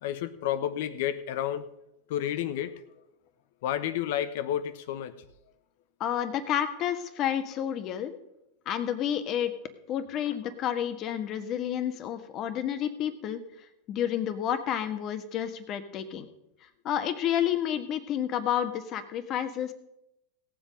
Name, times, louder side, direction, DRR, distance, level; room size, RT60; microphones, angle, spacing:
voice 1, 0.0-1.6 2.1-2.8 3.6-5.1, left 11 dB, 70° left, 13 dB, 1.1 m, -30 dB
voice 2, 6.0-8.1 8.6-9.5 9.9-13.4 13.9-16.2 16.8-19.7, left 10 dB, 45° left, 9 dB, 1.6 m, -30 dB
17.5 x 7.7 x 5.2 m, 0.85 s
hypercardioid pair, 95°, 0 cm